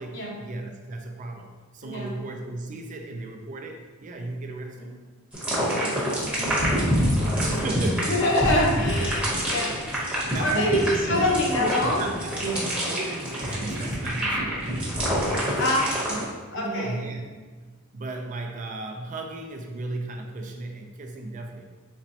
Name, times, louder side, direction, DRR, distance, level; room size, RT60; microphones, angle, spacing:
voice 1, 0.0-4.9 7.4-8.1 8.7-8.9 10.3-11.3 11.6-15.6 16.1-16.3 16.5-17.3 17.9-21.6, right 2 dB, 35° right, 3 dB, 0.4 m, -34 dB
voice 2, 1.8-2.1 4.8-4.9 5.7-12.1 12.5-12.6 14.4-14.5 15.6-16.1 16.5-17.0, left 1 dB, 60° left, -3 dB, 0.8 m, -27 dB
sound 1, 5.3-16.2, equal, 5° right, 0.8 m, -27 dB
4.1 x 3.0 x 2.7 m, 1.4 s
head